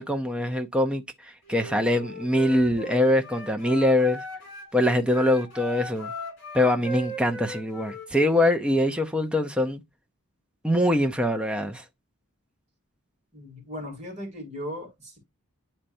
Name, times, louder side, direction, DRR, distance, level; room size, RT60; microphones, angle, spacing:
voice 1, 0.0-4.2 4.7-6.1 6.5-9.8 10.6-11.8, left 1 dB, 5° right, 0.5 m, -23 dB
Wind instrument woodwind instrument, 1.5-4.7 5.1-8.5, equal, 55° left, 2.9 m, -38 dB
voice 2, 13.3-15.2, equal, 30° right, 2.8 m, -37 dB
10.0 x 4.3 x 2.6 m
head